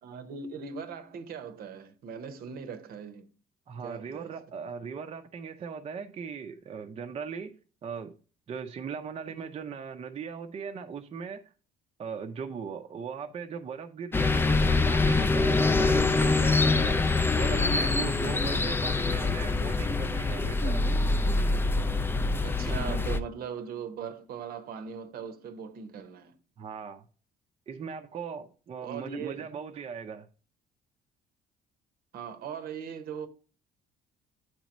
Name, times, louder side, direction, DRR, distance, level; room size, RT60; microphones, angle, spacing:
voice 1, 0.0-3.3 3.8-4.3 22.4-26.4 28.8-29.5 32.1-33.3, right 6 dB, 65° right, 0.8 m, -39 dB
voice 2, 3.7-7.6 7.8-8.1 8.5-11.4 12.0-17.0 17.4-20.8 26.6-27.0 27.7-30.3, right 6 dB, 35° right, 0.6 m, -39 dB
sound 1, 14.1-23.2, left 3 dB, 15° left, 0.4 m, -25 dB
8.0 x 3.0 x 5.1 m
cardioid pair, 110°, 17 cm